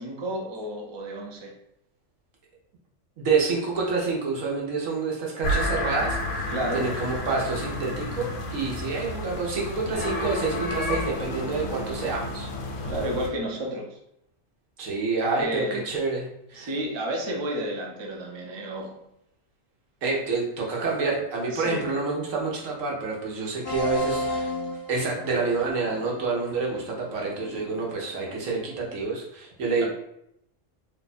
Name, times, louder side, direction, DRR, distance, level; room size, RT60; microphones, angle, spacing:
voice 1, 0.0-1.5 6.5-6.9 12.8-14.0 15.4-15.8 16.5-19.0 21.5-21.9 29.8-29.9, right 1 dB, 40° right, 0 dB, 0.3 m, -31 dB
voice 2, 3.2-6.4 6.7-12.5 14.8-16.7 20.0-24.5 24.9-29.9, right 4 dB, 90° right, -2 dB, 1.3 m, -28 dB
sound 1, 5.4-13.3, left 1 dB, 75° left, 1.0 m, -31 dB
sound 2, 23.6-29.0, left 1 dB, 45° left, 0.4 m, -34 dB
2.8 x 2.3 x 4.0 m, 0.79 s
omnidirectional pair, 1.3 m